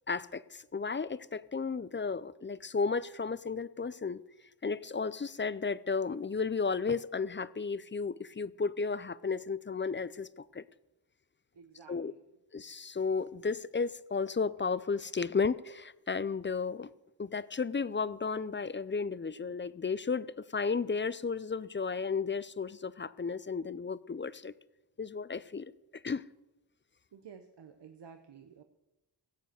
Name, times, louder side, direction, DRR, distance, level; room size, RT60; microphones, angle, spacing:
voice 1, 0.1-4.2 4.6-10.6 11.9-12.1 12.5-16.9 17.2-24.5 25.0-25.7 26.0-26.2, left 5 dB, 30° left, 0.5 m, -33 dB
voice 2, 11.5-12.4 27.1-28.6, right 7 dB, 75° right, 0.9 m, -53 dB
16.0 x 7.6 x 6.7 m
cardioid pair, 55°, 42 cm